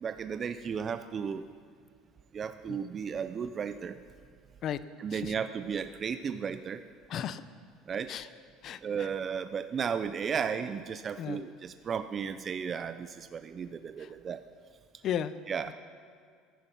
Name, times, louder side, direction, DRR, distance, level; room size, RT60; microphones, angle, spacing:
voice 1, 0.0-1.4 2.3-4.0 5.0-6.8 7.9-8.1 8.8-14.4 15.5-15.7, right 7 dB, 25° right, 10 dB, 0.3 m, -34 dB
voice 2, 7.1-7.4 8.1-8.3 8.6-9.1 11.2-11.4 14.0-14.1 15.0-15.3 15.7-15.8, left 9 dB, 40° left, 15 dB, 0.5 m, -35 dB
14.0 x 10.0 x 5.8 m, 2.1 s
cardioid pair, 160°, 0 cm